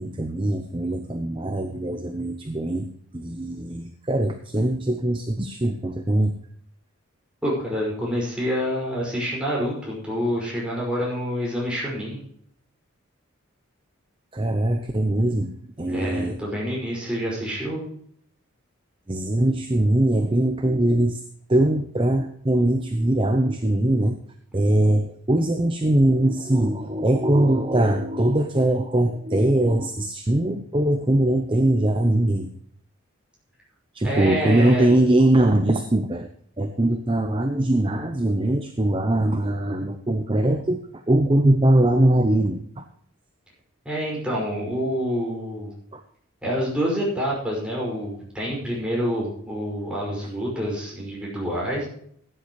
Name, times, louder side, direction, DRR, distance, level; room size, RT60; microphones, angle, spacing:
voice 1, 0.0-6.4 14.3-16.3 19.1-21.2 21.5-24.2 24.5-32.5 33.9-36.3 36.6-40.8 41.1-42.8 45.9-46.0, right 1 dB, 25° right, 6 dB, 0.7 m, -21 dB
voice 2, 7.4-12.2 15.9-17.8 34.0-34.9 43.9-45.7 46.4-51.9, equal, 5° right, -5 dB, 5.4 m, -27 dB
15.5 x 9.9 x 3.1 m, 0.65 s
head